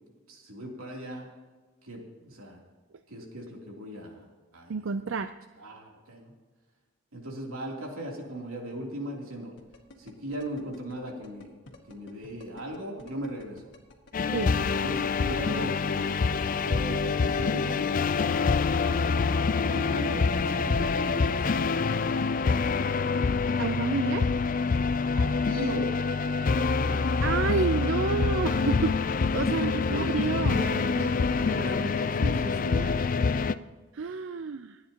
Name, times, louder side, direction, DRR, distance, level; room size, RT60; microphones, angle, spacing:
voice 1, 0.3-1.3 1.8-2.6 3.1-4.2 4.5-5.0 5.6-6.3 7.1-9.5 10.0-13.7 14.6-17.9 18.8-21.5 25.1-25.9 29.6-33.2, equal, 90° right, -1 dB, 3.0 m, -38 dB
voice 2, 4.7-5.3 14.3-14.6 23.6-24.3 27.2-28.9 29.3-30.6 33.9-34.8, right 4 dB, 60° right, 9 dB, 0.5 m, -29 dB
sound 1, 9.6-14.8, left 2 dB, 55° left, 1.8 m, -51 dB
sound 2, 14.1-33.5, left 4 dB, 40° left, 0.4 m, -26 dB
28.5 x 9.5 x 2.9 m, 1.4 s
head